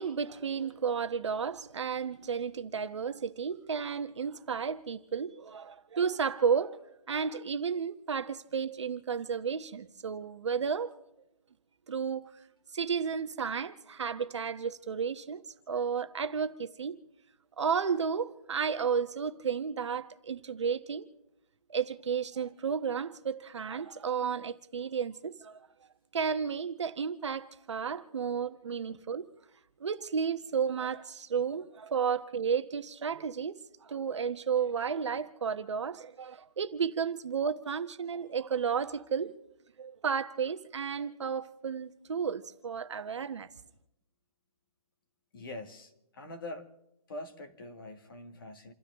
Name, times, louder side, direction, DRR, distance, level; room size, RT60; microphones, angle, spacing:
voice 1, 0.0-6.8 7.1-10.9 11.9-12.3 12.7-15.4 15.7-17.0 17.6-21.1 21.7-25.7 26.1-29.3 29.8-39.3 39.8-43.5, right 6 dB, 50° right, 1.1 m, -32 dB
voice 2, 45.3-46.7 47.1-48.7, left 2 dB, 35° left, 2.0 m, -44 dB
29.0 x 13.0 x 3.6 m
hypercardioid pair, 170°, 19 cm